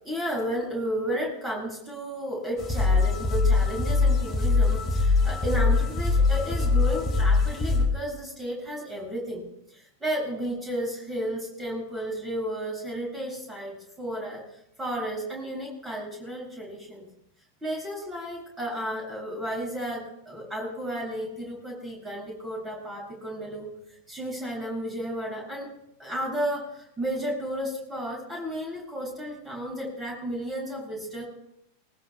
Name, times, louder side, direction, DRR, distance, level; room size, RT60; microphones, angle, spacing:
voice 1, 0.0-9.4 10.0-14.4 14.8-17.1 17.6-23.7 24.1-25.7 26.0-31.2, equal, 10° right, -1 dB, 7.2 m, -33 dB
sound 1, 2.6-7.9, left 3 dB, 20° left, 2.6 m, -22 dB
19.5 x 19.5 x 2.4 m, 0.77 s
figure-of-eight pair, 90°, 0 cm